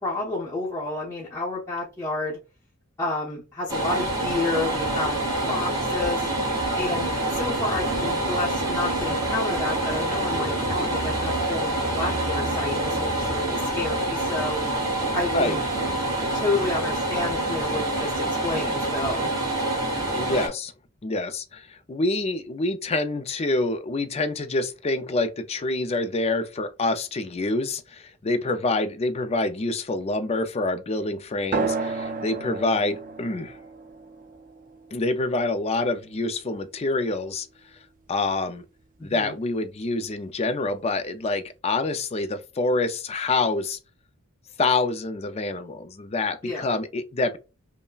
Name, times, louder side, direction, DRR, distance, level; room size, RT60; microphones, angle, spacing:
voice 1, 0.0-2.4 3.0-5.2 5.5-6.3 6.7-14.6 15.1-15.6 16.3-19.3 39.0-39.3 46.4-46.7, left 2 dB, 10° left, 0.9 m, -30 dB
sound 1, 3.7-20.5, right 1 dB, 20° right, 1.8 m, -26 dB
voice 2, 20.1-20.7 21.0-33.6 34.9-37.5 37.7-37.8 38.1-38.6 39.0-43.8 44.6-47.4, left 2 dB, 30° left, 0.4 m, -26 dB
sound 2, 31.5-36.6, right 4 dB, 40° right, 0.5 m, -33 dB
5.4 x 2.1 x 2.3 m
head